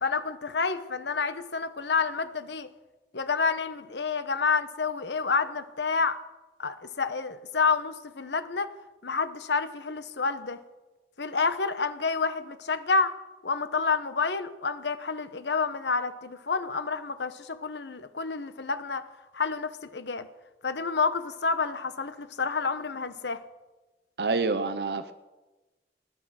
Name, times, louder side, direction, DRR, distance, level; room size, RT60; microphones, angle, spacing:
voice 1, 0.0-2.7 3.1-6.2 6.6-8.7 9.0-10.6 11.2-13.1 13.4-19.0 19.3-20.3 20.6-23.4, left 4 dB, 90° left, 12 dB, 1.0 m, -29 dB
voice 2, 24.2-25.1, right 3 dB, 70° right, 9 dB, 0.7 m, -27 dB
19.0 x 9.8 x 6.4 m, 1.2 s
head